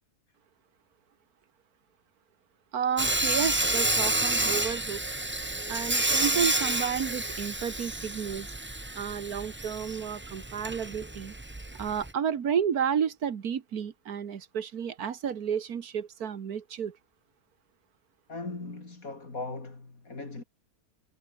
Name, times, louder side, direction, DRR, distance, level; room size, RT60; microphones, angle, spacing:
voice 1, 2.7-5.0 5.7-8.5 8.9-11.3 11.7-17.0, right 8 dB, 75° right, 1.9 m, -31 dB
Sawing, 3.0-12.1, right 2 dB, 10° right, 0.7 m, -30 dB
voice 2, 18.3-20.4, left 3 dB, 65° left, 4.5 m, -39 dB
omnidirectional pair, 1.6 m